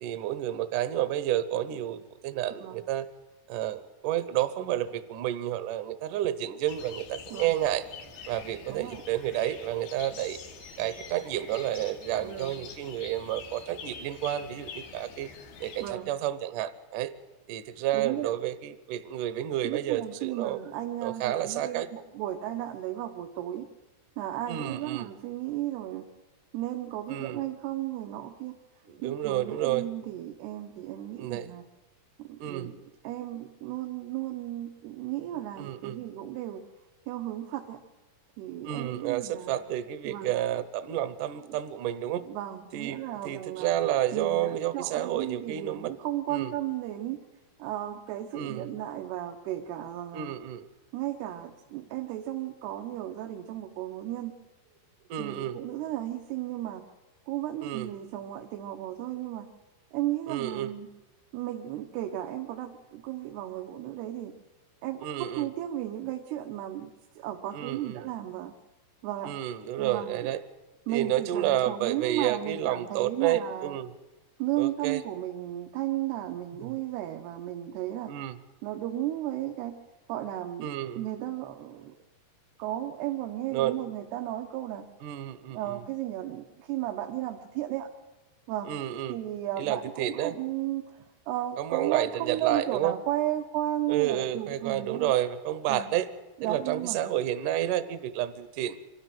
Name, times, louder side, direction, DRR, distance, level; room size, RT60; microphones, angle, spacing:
voice 1, 0.0-3.1 3.5-7.9 8.3-10.4 10.8-15.3 15.6-17.1 17.5-20.6 21.0-21.9 24.5-25.1 27.1-27.4 28.9-29.9 31.2-31.5 32.4-32.7 35.6-36.0 38.6-42.2 42.7-45.9 46.3-46.5 48.3-48.7 50.1-50.7 55.1-55.6 57.6-57.9 60.3-60.7 65.0-65.5 67.5-68.0 69.2-70.4 70.9-73.9 74.6-75.0 76.6-76.7 78.1-78.4 80.6-81.1 83.5-83.7 85.0-85.8 88.7-89.2 89.6-90.4 91.6-92.9 93.9-96.1 96.4-98.8, right 12 dB, 75° right, 13 dB, 2.0 m, -30 dB
sound 1, 6.7-15.9, left 6 dB, 90° left, 4.2 m, -45 dB
voice 2, 8.7-9.0 12.2-12.6 15.8-16.1 17.9-18.3 19.6-23.7 24.2-26.0 26.5-28.6 29.0-31.6 32.2-32.8 33.0-36.6 37.1-37.8 38.4-39.5 40.0-40.3 41.5-41.6 42.3-43.7 44.1-47.2 47.6-50.3 50.9-54.3 55.2-56.8 57.3-59.5 59.9-60.9 61.3-64.3 64.8-65.1 65.4-68.5 69.0-69.3 69.8-70.3 70.9-73.8 74.4-78.1 78.6-79.8 80.1-80.7 81.0-81.9 82.6-84.8 85.5-87.9 88.5-88.7 89.1-95.1 95.7-95.9 96.4-97.0, right 13 dB, 90° right, 5 dB, 3.0 m, -34 dB
25.5 x 12.5 x 9.2 m, 1.1 s
omnidirectional pair, 4.5 m